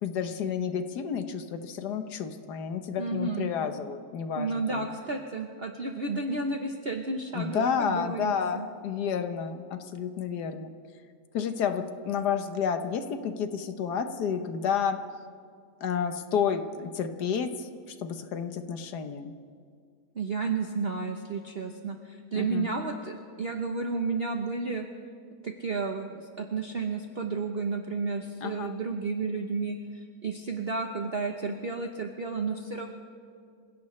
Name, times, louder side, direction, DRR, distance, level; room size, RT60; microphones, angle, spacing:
voice 1, 0.0-4.9 7.3-10.7 11.3-15.0 15.8-19.3 22.3-22.7 28.4-28.8, left 7 dB, 70° left, 8 dB, 1.5 m, -30 dB
voice 2, 3.0-3.5 4.4-8.7 20.1-24.8 25.4-32.9, right 4 dB, 45° right, 4 dB, 1.0 m, -32 dB
27.0 x 16.5 x 3.2 m, 2.2 s
omnidirectional pair, 1.8 m